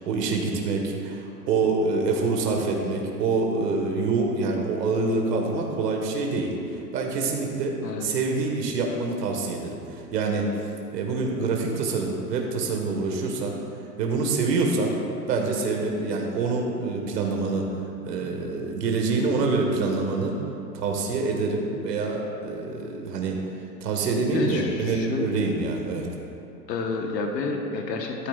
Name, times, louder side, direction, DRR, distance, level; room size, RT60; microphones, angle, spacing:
voice 1, 0.0-6.5 6.9-10.5 10.9-13.6 14.0-15.0 15.3-17.7 18.0-20.4 20.7-23.4 23.8-26.1, right 3 dB, 80° right, 1 dB, 1.6 m, -26 dB
voice 2, 24.3-25.4 26.7-28.3, left 4 dB, 90° left, 2 dB, 1.3 m, -30 dB
13.0 x 9.9 x 2.4 m, 2.7 s
hypercardioid pair, 145°, 48 cm